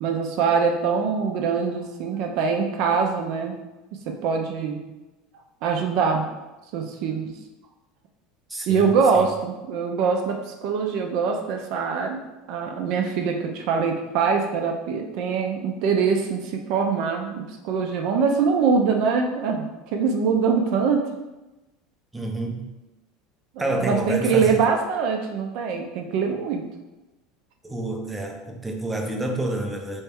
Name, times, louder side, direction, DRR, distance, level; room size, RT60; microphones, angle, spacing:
voice 1, 0.0-3.6 4.1-4.8 5.6-6.3 6.7-7.3 8.7-12.2 12.5-21.1 23.5-26.7, right 5 dB, 65° right, 3 dB, 0.5 m, -23 dB
voice 2, 8.5-9.3 22.1-22.7 23.6-24.7 27.6-30.0, right 1 dB, 10° right, 2 dB, 0.6 m, -28 dB
3.2 x 3.1 x 3.5 m, 1.0 s
supercardioid pair, 115°, 0 cm